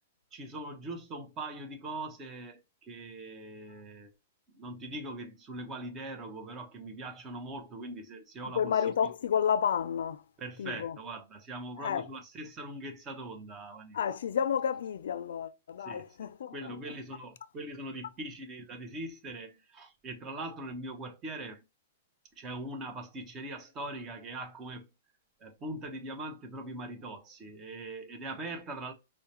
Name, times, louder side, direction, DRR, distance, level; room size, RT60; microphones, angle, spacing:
voice 1, 0.3-4.1 4.5-8.8 10.4-14.0 15.8-16.0 16.5-21.6 22.4-24.9 25.4-28.9, right 2 dB, 25° right, 0.9 m, -41 dB
voice 2, 8.5-10.2 10.6-11.0 11.8-12.1 13.9-17.0, left 8 dB, 80° left, 0.4 m, -31 dB
4.6 x 2.2 x 2.8 m
hypercardioid pair, 150°, 0 cm